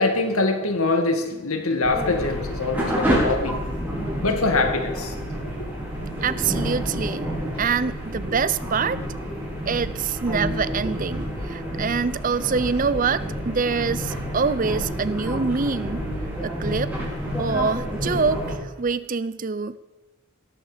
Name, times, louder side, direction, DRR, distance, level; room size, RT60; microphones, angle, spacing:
voice 1, 0.0-3.6 4.2-5.1 5.6-5.7, left 3 dB, 75° left, 5 dB, 2.1 m, -23 dB
sound 1, 1.8-18.5, equal, 10° right, 5.5 m, -29 dB
voice 2, 6.2-7.3 7.6-9.0 9.7-16.0 16.4-16.9 17.4-19.8, right 5 dB, 35° right, 16 dB, 0.5 m, -25 dB
18.0 x 13.5 x 5.1 m, 1.1 s
head